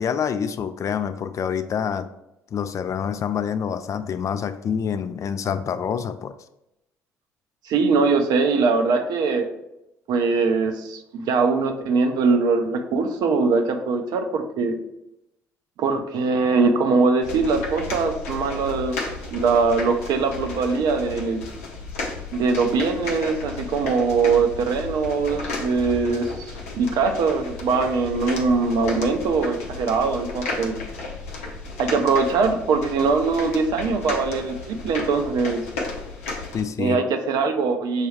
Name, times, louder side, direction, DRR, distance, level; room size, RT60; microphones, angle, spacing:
voice 1, 0.0-2.1 2.5-6.3 36.5-37.0, left 7 dB, 45° left, 10 dB, 0.4 m, -26 dB
voice 2, 7.6-9.5 10.1-14.8 15.8-19.0 19.3-21.4 22.3-30.8 31.8-35.7 36.8-38.1, right 4 dB, 65° right, 6 dB, 0.6 m, -22 dB
sound 1, 17.2-36.6, left 3 dB, 85° left, 0.7 m, -34 dB
6.4 x 2.3 x 3.2 m, 0.88 s
hypercardioid pair, 55°, 8 cm